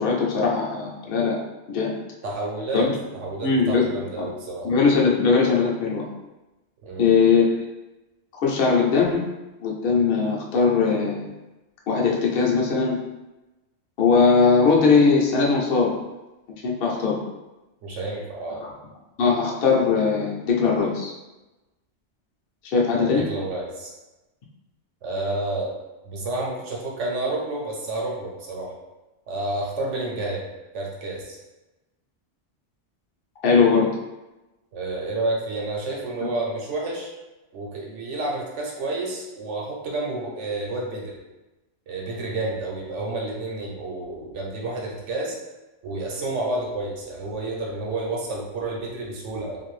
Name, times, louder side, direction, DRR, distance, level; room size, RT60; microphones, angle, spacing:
voice 1, 0.0-1.4 1.7-1.9 2.7-2.9 3.4-3.9 4.2-4.3 4.6-6.1 7.0-7.5 8.4-9.3 9.6-11.3 11.9-13.0 14.0-15.9 16.6-17.2 19.2-21.1 22.6-23.2 33.4-33.9, left 5 dB, 60° left, -3 dB, 0.7 m, -20 dB
voice 2, 2.2-4.7 6.8-7.1 17.8-18.6 22.9-23.9 25.0-25.7 26.0-28.7 29.3-30.5 30.7-31.4 34.7-37.1 37.5-41.2 41.9-45.4 45.8-49.6, right 2 dB, 80° right, -2 dB, 1.1 m, -30 dB
2.6 x 2.5 x 3.1 m, 1.0 s
omnidirectional pair, 1.2 m